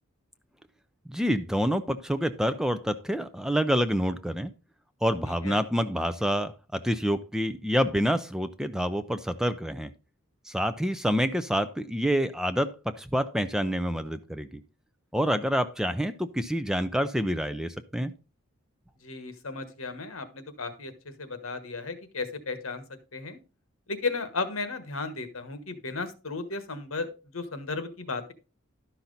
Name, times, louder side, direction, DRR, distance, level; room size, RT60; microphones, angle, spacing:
voice 1, 1.1-4.5 5.0-9.9 10.5-14.6 15.1-18.1, equal, 5° right, 11 dB, 0.4 m, -27 dB
voice 2, 5.3-5.6 19.0-23.4 23.9-28.3, left 3 dB, 75° left, 10 dB, 1.3 m, -35 dB
11.5 x 5.8 x 3.9 m, 0.32 s
head